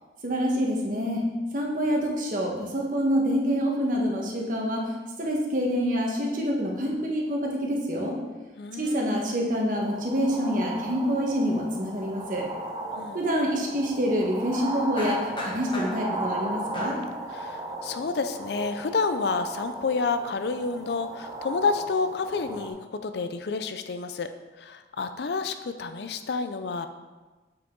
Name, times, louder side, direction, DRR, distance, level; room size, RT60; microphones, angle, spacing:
voice 1, 0.2-1.3 1.5-8.2 8.7-12.5 13.1-17.0, equal, 45° right, -1 dB, 1.3 m, -26 dB
voice 2, 8.6-9.2 13.0-13.2 17.3-22.8 23.0-24.3 24.6-26.9, left 4 dB, 65° left, 9 dB, 0.4 m, -29 dB
sound 1, 9.8-22.7, right 1 dB, 20° right, 0.7 m, -36 dB
sound 2, 11.2-11.3 11.5-11.9 15.0-16.3 16.7-17.2 17.8-18.0, left 1 dB, 25° left, 1.0 m, -37 dB
7.6 x 5.7 x 3.8 m, 1.2 s
head